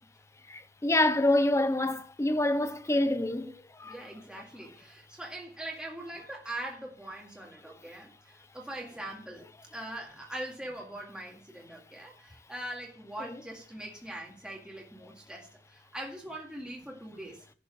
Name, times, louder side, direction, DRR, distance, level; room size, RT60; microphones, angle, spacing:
voice 1, 0.5-3.9, left 1 dB, 15° left, 0.6 m, -27 dB
voice 2, 3.8-17.4, right 1 dB, 5° right, 2.0 m, -42 dB
11.5 x 4.3 x 7.5 m
head